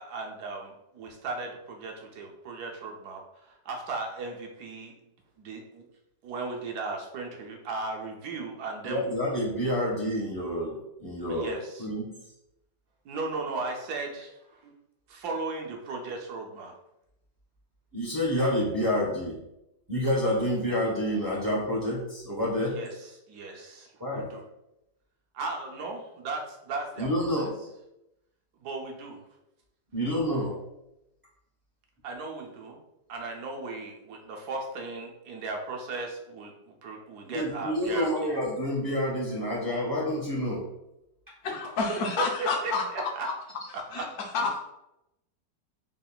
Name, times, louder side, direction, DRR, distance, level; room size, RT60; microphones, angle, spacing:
voice 1, 0.0-4.9 5.4-5.8 6.2-9.1 11.3-11.9 13.0-14.7 15.1-16.7 22.6-24.4 25.3-27.5 28.6-29.2 32.0-32.8 33.1-38.3 42.2-43.3 43.7-44.1, right 3 dB, 70° right, 1.1 m, -36 dB
voice 2, 8.8-11.5 11.8-12.1 17.9-19.4 19.9-22.8 24.0-24.3 27.0-27.7 29.9-30.7 37.2-40.6, equal, 30° right, 0.3 m, -28 dB
voice 3, 41.4-43.1 43.9-44.0 44.3-44.6, left 4 dB, 65° left, 1.1 m, -29 dB
3.9 x 3.6 x 2.2 m
omnidirectional pair, 1.9 m